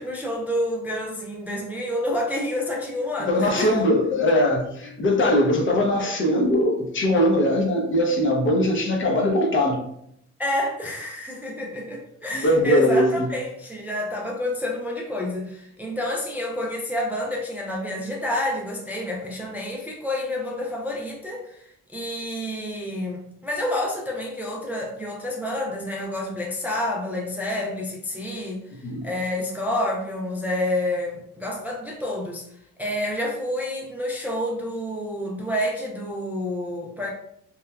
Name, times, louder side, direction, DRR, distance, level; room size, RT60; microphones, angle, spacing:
voice 1, 0.0-3.8 10.4-32.4 32.8-37.1, left 1 dB, 5° right, -2 dB, 0.3 m, -29 dB
voice 2, 3.3-9.8 12.3-13.3 28.8-29.1, left 1 dB, 40° left, 1 dB, 0.7 m, -21 dB
2.9 x 2.1 x 2.3 m, 0.73 s
cardioid pair, 90°, 30 cm